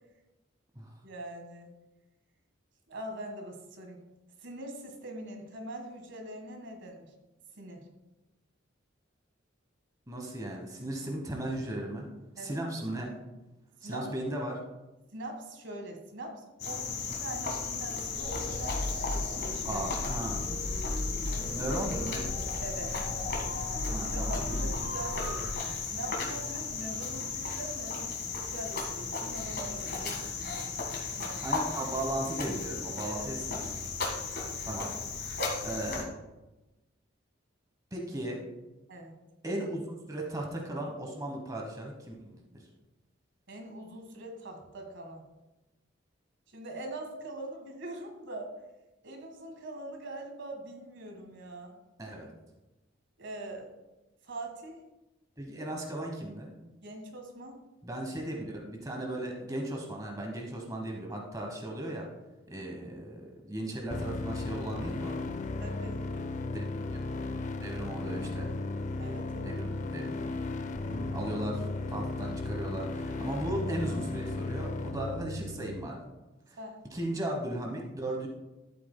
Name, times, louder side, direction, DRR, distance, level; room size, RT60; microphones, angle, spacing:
voice 1, 1.0-1.7 2.9-4.0 4.4-7.1 7.6-7.9 12.4-12.6 13.8-14.1 15.1-19.8 22.6-23.0 24.1-30.7 31.2-31.4 33.1-33.5 38.9-39.1 43.5-45.2 46.5-48.5 49.0-51.7 53.2-53.7 54.2-54.8 56.8-57.6 65.6-66.1 69.0-69.6 76.6-76.8, right 1 dB, 70° right, 3 dB, 1.6 m, -43 dB
voice 2, 10.1-12.1 12.4-13.1 13.8-14.6 19.6-20.5 21.5-22.3 23.9-24.7 31.4-34.0 34.6-34.9 35.6-36.1 37.9-38.4 39.4-42.4 52.0-52.3 55.4-56.5 57.8-62.1 62.5-65.2 66.5-66.6 66.9-67.0 67.6-68.5 69.4-70.2 70.9-71.6 71.9-76.1 76.5-76.6 76.9-78.3, right 1 dB, 20° right, 0 dB, 1.1 m, -36 dB
Cricket, 16.6-36.0, left 4 dB, 55° left, 1.7 m, -35 dB
sound 1, 18.1-25.5, left 1 dB, 80° left, 1.9 m, -36 dB
sound 2, 63.9-75.9, left 2 dB, 40° left, 0.4 m, -35 dB
12.0 x 8.3 x 2.2 m, 1.0 s
head